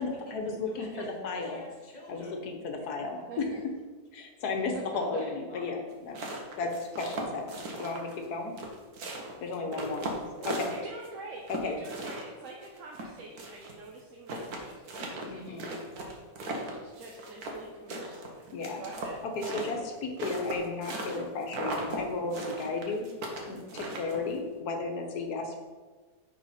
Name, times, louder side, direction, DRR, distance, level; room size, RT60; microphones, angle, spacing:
voice 1, 0.0-1.6 2.1-3.5 4.1-6.3 6.6-8.5 9.4-10.1 10.6-10.7 11.5-11.8 15.3-15.7 18.5-18.8 19.4-23.0 23.5-25.6, left 3 dB, 85° left, 3 dB, 1.5 m, -34 dB
voice 2, 0.6-1.0 1.4-2.4 5.2-5.8 9.8-10.7, left 1 dB, 30° left, -3 dB, 1.7 m, -48 dB
voice 3, 3.3-3.6 4.7-5.0 10.7-16.2 16.7-19.2 19.4-19.5, right 3 dB, 60° right, -1 dB, 1.1 m, -46 dB
sound 1, 5.9-8.3 8.6-11.1 11.5-13.7 14.0-14.1 14.3-17.6 17.9-21.2 21.5-22.0 22.3-24.4, right 2 dB, 75° right, 1.6 m, -37 dB
9.4 x 4.3 x 4.2 m, 1.4 s
omnidirectional pair, 1.6 m